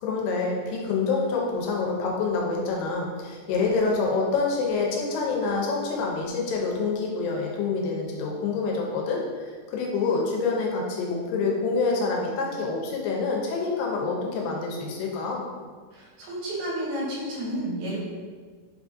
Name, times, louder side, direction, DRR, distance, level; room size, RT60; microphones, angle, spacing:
voice 1, 0.0-15.4, left 4 dB, 90° left, -1 dB, 2.4 m, -27 dB
voice 2, 15.9-18.0, right 1 dB, 75° right, -4 dB, 2.1 m, -31 dB
5.2 x 2.5 x 2.5 m, 1.5 s
omnidirectional pair, 3.9 m